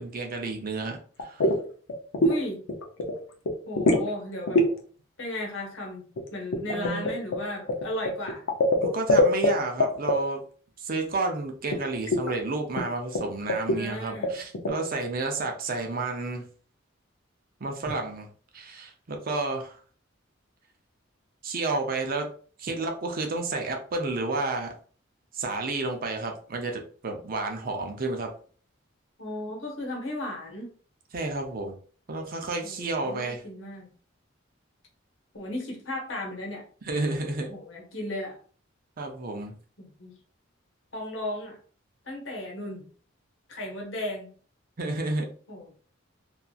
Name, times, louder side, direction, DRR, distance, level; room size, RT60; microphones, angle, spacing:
voice 1, 0.0-1.4 6.6-7.1 8.8-10.4 10.8-16.5 17.6-18.3 18.5-19.8 21.4-22.3 22.6-24.7 25.3-28.3 31.1-31.8 32.1-33.4 36.8-37.6 39.0-39.5 44.8-45.3, right 3 dB, 45° right, 3 dB, 0.5 m, -31 dB
sound 1, 1.2-1.6 1.9-2.4 2.7-3.1 3.4-4.1 4.5-4.7 6.2-9.5 9.8-10.1 11.7-11.8 12.1-12.3 12.8-12.9 13.1-13.2 13.5-13.8 14.2-14.7, left 1 dB, 85° left, 0.6 m, -23 dB
voice 2, 2.2-2.6 3.7-4.6 5.2-8.4 13.7-14.4 17.8-17.9 29.2-30.7 32.6-33.9 35.3-36.6 37.5-38.4 39.8-40.1 40.9-41.6 42.0-42.8 43.5-44.3 45.5-45.7, left 1 dB, 65° left, 0 dB, 1.0 m, -35 dB
2.7 x 2.4 x 2.3 m, 0.43 s
head